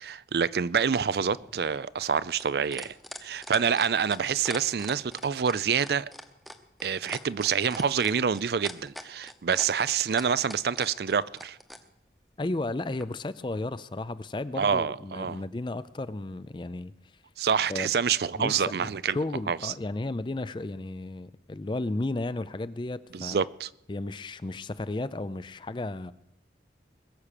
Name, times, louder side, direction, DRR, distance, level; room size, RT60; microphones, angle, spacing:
voice 1, 0.0-2.9 3.2-6.1 6.8-11.6 14.6-15.4 17.4-19.2 19.5-19.7 23.1-23.7, right 6 dB, 65° right, 0.4 m, -27 dB
sound 1, 1.3-11.8 13.0-13.1, equal, ahead, 0.9 m, -42 dB
voice 2, 12.4-16.9 17.7-17.9 18.3-23.4 23.9-26.1, left 2 dB, 25° left, 0.4 m, -33 dB
21.5 x 7.3 x 6.7 m
head